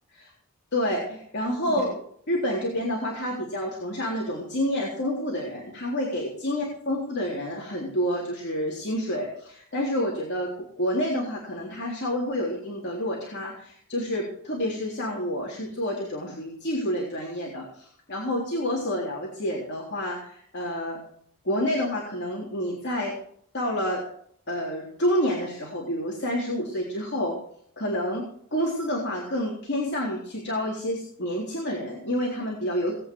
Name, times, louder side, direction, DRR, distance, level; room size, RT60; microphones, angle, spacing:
voice 1, 0.7-2.0 2.3-10.5 10.8-21.0 21.4-23.1 23.5-24.0 24.5-27.3 27.8-28.2 28.5-33.0, equal, 50° left, -4 dB, 3.7 m, -28 dB
19.0 x 9.4 x 4.8 m, 0.65 s
head